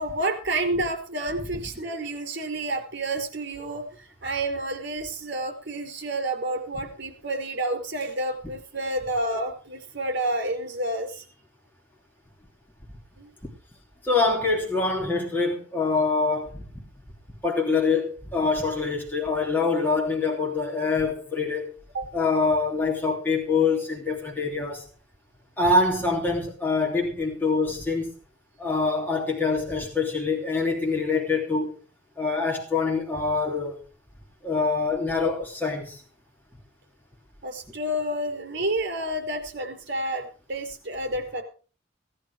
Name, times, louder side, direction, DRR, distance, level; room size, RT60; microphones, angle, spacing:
voice 1, 0.0-11.2 13.2-13.3 21.9-22.1 37.4-41.4, right 1 dB, 60° right, 5.0 m, -29 dB
voice 2, 14.0-16.6 17.4-21.7 22.1-24.8 25.6-28.1 28.6-31.7 32.2-33.8 34.4-36.0, left 4 dB, 10° left, 3.0 m, -25 dB
17.5 x 11.0 x 4.9 m
head